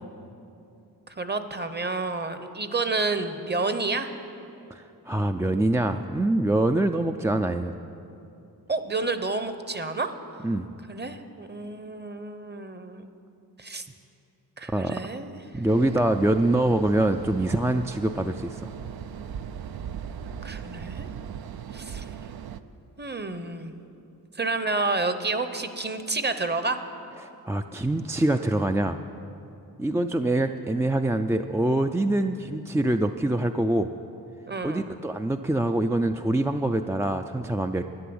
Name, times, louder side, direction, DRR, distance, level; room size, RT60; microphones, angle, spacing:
voice 1, 1.2-4.1 8.7-10.1 10.9-13.1 13.6-13.8 14.6-15.4 20.4-21.1 21.7-22.1 23.0-23.7 24.3-26.8 34.5-34.9, right 3 dB, 25° right, 9 dB, 0.8 m, -29 dB
voice 2, 4.7-7.8 10.4-10.7 14.7-15.0 15.5-18.7 27.2-29.0 29.8-33.9 34.6-37.9, right 1 dB, 10° right, 6 dB, 0.3 m, -25 dB
sound 1, 15.7-22.6, right 8 dB, 70° right, 0.6 m, -38 dB
11.5 x 10.5 x 7.8 m, 2.7 s
wide cardioid pair, 85°, 38 cm